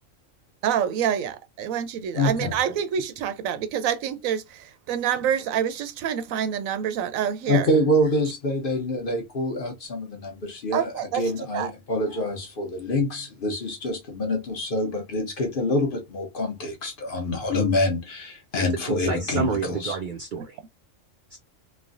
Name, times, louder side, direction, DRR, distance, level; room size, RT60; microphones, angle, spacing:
voice 1, 0.6-7.7 10.7-11.2 11.5-11.7, right 9 dB, 90° right, 1.0 m, -27 dB
voice 2, 2.1-2.6 7.5-20.0, left 1 dB, 50° left, 0.8 m, -26 dB
voice 3, 19.1-20.6 21.3-21.4, right 6 dB, 70° right, 0.4 m, -29 dB
3.2 x 2.1 x 2.5 m
omnidirectional pair, 1.4 m